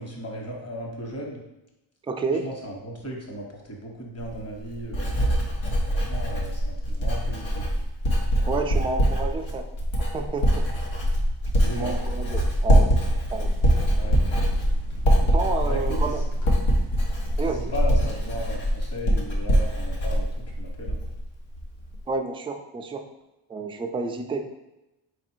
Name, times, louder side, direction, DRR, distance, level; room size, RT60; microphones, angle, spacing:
voice 1, 0.0-1.4 2.4-5.1 5.9-7.7 11.6-12.0 14.0-14.2 15.6-16.1 17.4-20.3 20.6-21.0, equal, 30° left, -1 dB, 1.2 m, -36 dB
voice 2, 2.1-2.5 8.5-9.7 10.1-10.7 11.7-12.9 13.3-13.5 15.2-16.2 17.4-17.7 22.1-23.0 23.5-24.4, right 3 dB, 10° right, 4 dB, 0.3 m, -30 dB
Writing, 4.2-21.2 21.5-22.0, equal, 80° left, 1.1 m, -23 dB
sound 1, 13.3-18.5, right 1 dB, 65° left, 1.0 m, -43 dB
4.2 x 2.5 x 4.4 m, 0.96 s
cardioid pair, 85°, 47 cm